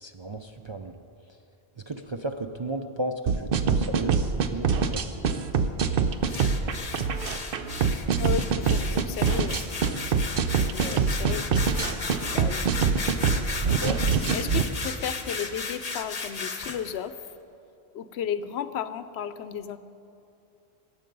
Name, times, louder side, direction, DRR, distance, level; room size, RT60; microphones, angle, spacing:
voice 1, 0.0-0.9 1.9-5.2 10.8-11.0 12.4-12.5 13.6-14.0, right 1 dB, 40° right, 5 dB, 0.4 m, -34 dB
sound 1, 3.3-14.6, right 6 dB, 60° right, 0.8 m, -24 dB
sound 2, 6.3-16.9, left 4 dB, 40° left, 1.0 m, -35 dB
voice 2, 8.2-9.6 10.7-11.8 12.3-12.7 14.3-17.2 17.9-19.8, left 8 dB, 80° left, 13 dB, 0.9 m, -34 dB
21.5 x 8.6 x 5.3 m, 2.7 s
omnidirectional pair, 1.1 m